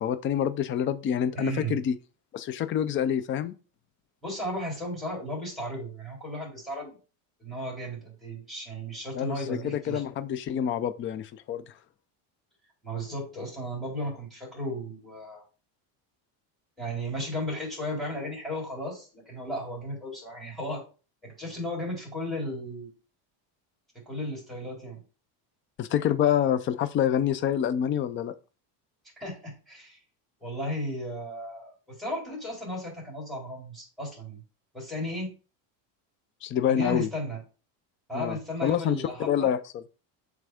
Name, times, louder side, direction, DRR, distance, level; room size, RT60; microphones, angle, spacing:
voice 1, 0.0-2.0 2.3-3.5 9.1-11.6 25.8-28.3 36.4-37.1 38.1-39.8, left 9 dB, 25° left, 0.4 m, -27 dB
voice 2, 1.4-1.8 4.2-6.9 7.4-10.0 12.8-15.4 16.8-20.8 21.2-22.9 24.1-25.0 29.2-30.0 30.4-34.4 34.7-35.3 36.6-37.4 38.1-39.5, equal, ahead, 4.0 m, -35 dB
7.6 x 3.6 x 4.9 m
cardioid pair, 155°, 47 cm